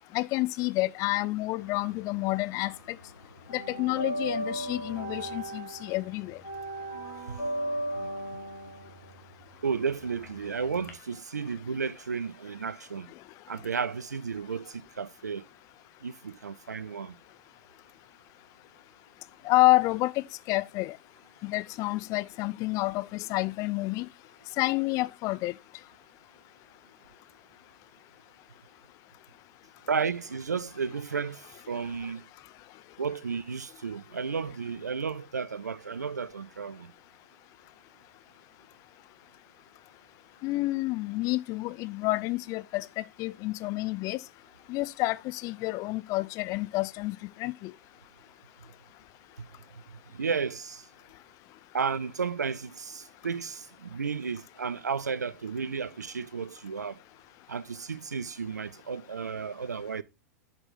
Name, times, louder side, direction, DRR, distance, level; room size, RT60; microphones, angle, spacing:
voice 1, 0.1-2.7 3.5-6.4 19.4-20.1 20.5-20.9 21.4-24.1 24.6-25.5 40.4-44.2 44.7-47.7, left 19 dB, 40° left, 0.4 m, -29 dB
sound 1, 1.6-2.7 3.0-10.9, right 1 dB, 90° left, 1.8 m, -36 dB
voice 2, 9.6-13.1 13.5-15.5 16.0-17.2 29.9-32.2 33.0-36.9 49.4-49.5 49.7-50.9 51.7-57.0 57.5-60.0, right 5 dB, 85° right, 0.4 m, -33 dB
7.6 x 4.8 x 4.0 m
figure-of-eight pair, 95°, 9 cm